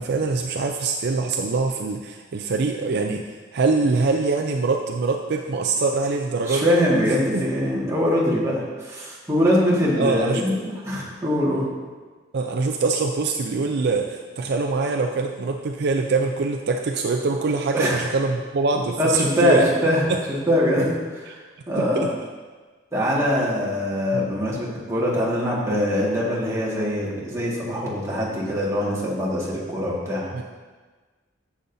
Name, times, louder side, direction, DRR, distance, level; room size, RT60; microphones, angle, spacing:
voice 1, 0.0-6.7 7.3-7.4 10.0-10.4 12.3-19.7 20.1-20.2 21.8-22.1 24.1-24.3 30.3-30.4, right 3 dB, 60° right, 3 dB, 0.4 m, -24 dB
voice 2, 6.4-11.7 17.7-18.1 19.0-21.4 21.7-22.1 22.9-30.3, equal, 15° right, -6 dB, 1.8 m, -23 dB
10.5 x 7.1 x 2.7 m, 1.4 s
head